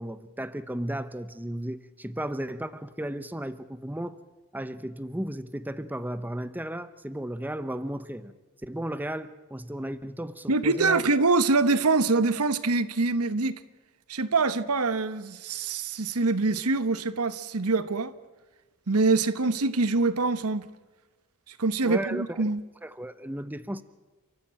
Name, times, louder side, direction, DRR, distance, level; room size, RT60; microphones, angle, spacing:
voice 1, 0.0-4.2 4.5-8.3 8.6-11.0 21.8-22.4 22.8-23.8, right 1 dB, 10° right, 0.7 m, -34 dB
voice 2, 10.5-13.5 14.1-18.1 18.9-20.7 21.6-22.6, right 3 dB, 85° right, 1.1 m, -24 dB
29.5 x 14.5 x 8.8 m
head